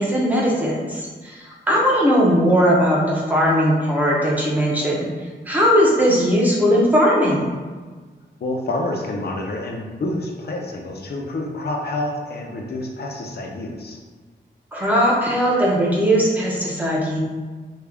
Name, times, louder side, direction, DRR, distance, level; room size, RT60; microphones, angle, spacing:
voice 1, 0.0-1.4 1.7-5.1 5.5-7.5 14.7-17.2, equal, 10° right, -4 dB, 0.7 m, -18 dB
voice 2, 8.4-14.0, left 1 dB, 55° left, 1 dB, 0.6 m, -28 dB
3.5 x 2.3 x 3.4 m, 1.4 s
wide cardioid pair, 160°, 19 cm